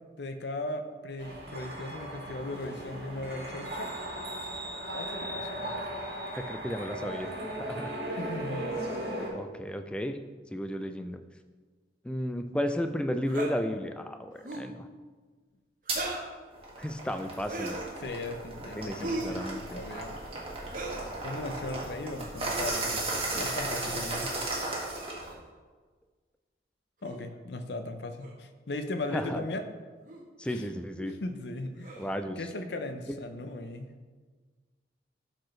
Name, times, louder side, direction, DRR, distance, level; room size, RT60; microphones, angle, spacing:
voice 1, 0.2-4.0 4.9-6.0 8.2-8.7 18.0-19.5 19.7-20.2 21.2-23.0 23.3-24.3 27.0-29.7 30.5-30.6 31.0-32.0 32.4-33.9, left 2 dB, 75° left, 7 dB, 0.6 m, -37 dB
sound 1, 1.2-9.3, right 1 dB, 65° right, 1.7 m, -37 dB
voice 2, 6.4-7.3 7.6-7.9 9.3-10.2 10.5-11.2 12.0-14.9 16.8-17.8 18.8-19.8 29.1-29.4 30.4-31.1 32.0-32.4, equal, 5° left, 7 dB, 0.3 m, -33 dB
sound 2, 13.3-13.5 14.4-14.7 15.9-16.3 17.4-17.9 19.0-19.4 20.7-21.1 22.4-22.6 23.7-23.9 24.9-25.4 27.0-27.2 28.2-28.3 29.0-29.3 30.1-30.2 31.8-32.2, right 2 dB, 50° right, 0.9 m, -38 dB
sound 3, 15.9-16.0 16.5-25.3, right 2 dB, 30° right, 1.5 m, -35 dB
11.5 x 4.4 x 3.2 m, 1.4 s
head